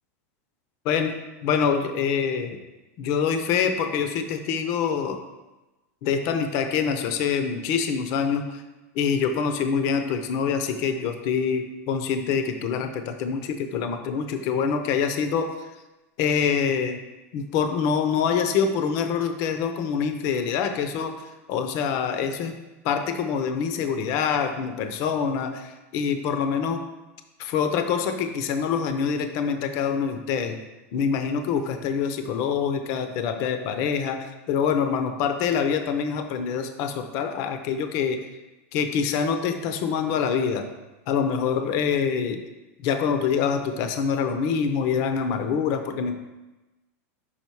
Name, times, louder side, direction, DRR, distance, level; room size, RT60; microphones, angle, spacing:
voice 1, 1.4-2.6 3.0-5.2 6.0-8.6 8.9-15.5 16.2-17.0 17.3-22.6 22.8-26.8 27.4-30.6 30.9-38.3 38.7-40.7 41.1-42.4 42.8-46.2, left 6 dB, 40° left, 7 dB, 0.6 m, -25 dB
5.7 x 5.1 x 4.6 m, 1.1 s
supercardioid pair, 165°, 8 cm